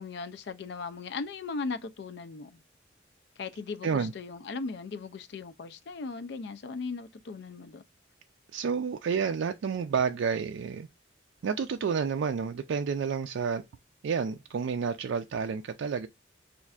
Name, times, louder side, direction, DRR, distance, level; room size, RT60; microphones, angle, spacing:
voice 1, 0.0-2.6 3.4-7.8, left 4 dB, 60° left, 0.4 m, -38 dB
voice 2, 8.5-10.9 11.4-13.6 14.0-16.1, right 6 dB, 75° right, 0.3 m, -30 dB
4.2 x 2.5 x 2.3 m
head